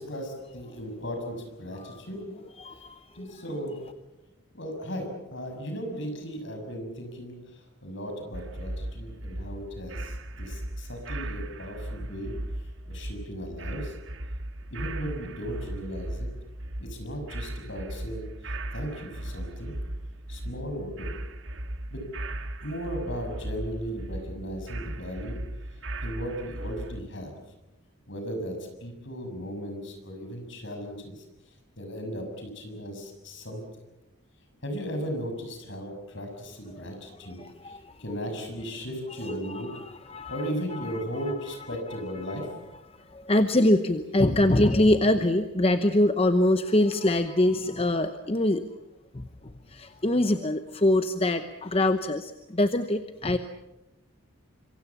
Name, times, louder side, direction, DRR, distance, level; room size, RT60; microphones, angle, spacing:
voice 1, 0.0-2.3 3.1-3.8 4.5-12.3 12.9-13.9 14.7-16.3 16.8-19.7 20.3-21.1 21.9-22.1 22.6-25.4 26.0-27.3 28.1-33.6 34.6-39.7 40.3-42.5, equal, 55° left, 4 dB, 6.6 m, -36 dB
voice 2, 2.6-3.3 36.7-36.8 37.4-37.9 39.2-40.9 41.2-41.3 42.3-42.6 43.1-48.6 49.1-49.3 49.7-53.4, left 1 dB, 25° left, 9 dB, 0.8 m, -24 dB
sound 1, 8.3-27.0, right 1 dB, 55° right, 1.8 m, -37 dB
26.0 x 24.0 x 7.2 m, 0.99 s
head